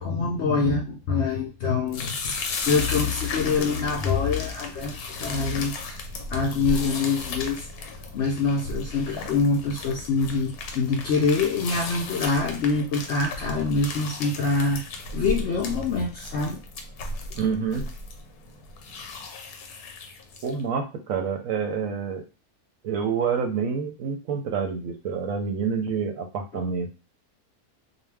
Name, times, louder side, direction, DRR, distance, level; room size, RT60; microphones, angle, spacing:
voice 1, 0.0-6.0 6.3-7.7 8.1-14.8 15.1-16.6, left 4 dB, 70° left, 0 dB, 0.6 m, -25 dB
sound 1, 1.9-20.6, left 3 dB, 85° left, 1.1 m, -35 dB
voice 2, 17.4-17.9 20.4-22.2 22.8-26.9, right 6 dB, 70° right, 5 dB, 0.9 m, -27 dB
2.6 x 2.2 x 3.2 m, 0.30 s
omnidirectional pair, 1.6 m